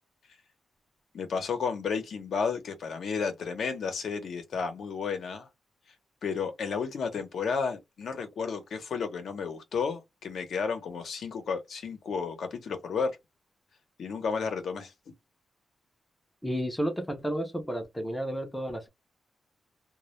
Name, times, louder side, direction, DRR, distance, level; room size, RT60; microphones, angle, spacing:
voice 1, 1.1-5.5 6.2-13.2 14.0-15.1, left 5 dB, 65° left, 0.7 m, -32 dB
voice 2, 16.4-18.9, equal, 5° left, 0.5 m, -32 dB
2.2 x 2.1 x 2.9 m
wide cardioid pair, 175°, 0 cm